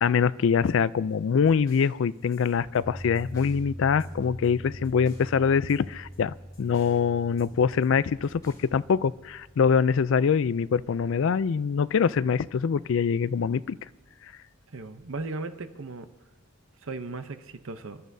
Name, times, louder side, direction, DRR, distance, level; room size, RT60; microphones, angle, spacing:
voice 1, 0.0-13.8, left 6 dB, 60° left, 17 dB, 0.3 m, -24 dB
sound 1, 1.1-3.7 4.0-5.4 5.7-7.0 7.4-8.8, left 1 dB, 15° left, 3.6 m, -54 dB
Piano, 2.8-15.0, equal, 5° right, 2.4 m, -45 dB
voice 2, 14.7-16.1 16.8-18.0, right 3 dB, 65° right, 9 dB, 0.7 m, -36 dB
28.5 x 12.0 x 2.7 m, 1.1 s
head